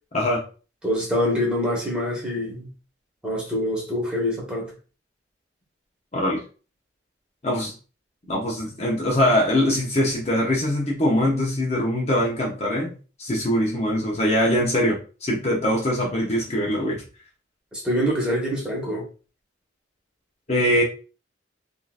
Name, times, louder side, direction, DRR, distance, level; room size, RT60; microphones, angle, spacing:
voice 1, 0.8-2.7 3.2-4.7 17.7-19.1, equal, 5° right, 1.2 m, -25 dB
voice 2, 8.3-12.9 13.2-17.0 20.5-20.8, left 1 dB, 35° left, 0.8 m, -22 dB
3.7 x 2.5 x 2.4 m
head